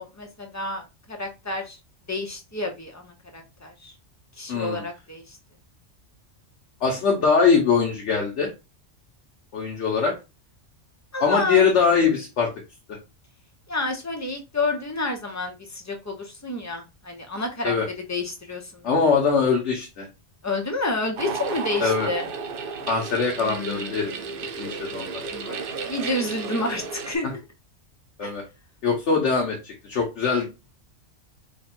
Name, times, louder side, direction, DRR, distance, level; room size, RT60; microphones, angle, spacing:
voice 1, 0.0-1.8 2.1-3.9 4.4-5.4 11.1-11.7 13.7-17.7 18.1-19.1 20.4-22.2 23.4-24.5 25.0-25.6 25.8-27.4 28.2-28.3, left 2 dB, 15° left, 2 dB, 0.6 m, -30 dB
voice 2, 4.5-4.8 6.8-8.5 9.5-10.1 11.2-12.5 12.9-13.0 17.6-17.9 18.8-20.1 21.8-22.1 22.9-24.1 24.6-25.1 28.2-28.4 28.8-30.5, left 5 dB, 70° left, -1 dB, 1.2 m, -22 dB
sound 1, 21.2-27.2, right 5 dB, 60° right, 0.6 m, -33 dB
3.5 x 2.2 x 4.2 m, 0.26 s
omnidirectional pair, 1.2 m